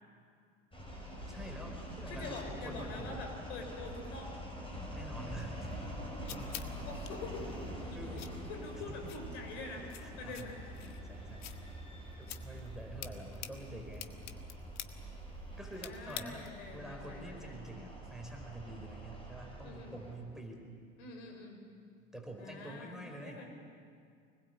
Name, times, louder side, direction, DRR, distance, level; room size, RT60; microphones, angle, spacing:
sound 1, 0.7-20.1, equal, 15° left, 6.6 m, -45 dB
voice 1, 1.3-3.2 4.9-5.7 6.3-6.5 7.9-8.2 8.7-9.1 9.8-10.5 10.8-11.7 12.2-14.2 15.6-20.6 22.1-23.4, right 1 dB, ahead, 0 dB, 5.1 m, -47 dB
voice 2, 2.1-4.4 6.8-8.2 8.5-9.9 10.2-10.5 15.6-17.6 19.6-20.0 21.0-21.6 22.4-23.5, left 3 dB, 65° left, 3 dB, 5.5 m, -46 dB
sound 2, 5.7-16.7, left 11 dB, 45° left, 1.7 m, -50 dB
25.0 x 20.5 x 8.5 m, 2.2 s
figure-of-eight pair, 75°, 38 cm